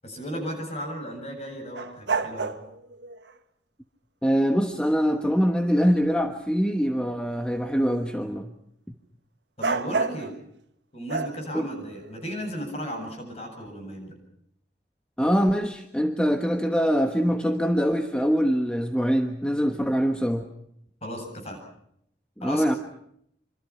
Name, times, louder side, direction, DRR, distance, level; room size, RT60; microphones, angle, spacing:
voice 1, 0.0-2.5 9.6-10.3 10.9-14.1 21.0-21.6 22.4-22.6, equal, 35° left, 4 dB, 7.9 m, -35 dB
sound 1, 1.8-3.3 9.6-10.3 11.1-12.5, right 4 dB, 80° right, 1.6 m, -30 dB
voice 2, 4.2-8.5 11.5-11.7 15.2-20.5 22.4-22.8, equal, 5° left, 5 dB, 1.3 m, -23 dB
27.0 x 26.0 x 5.9 m, 0.73 s
head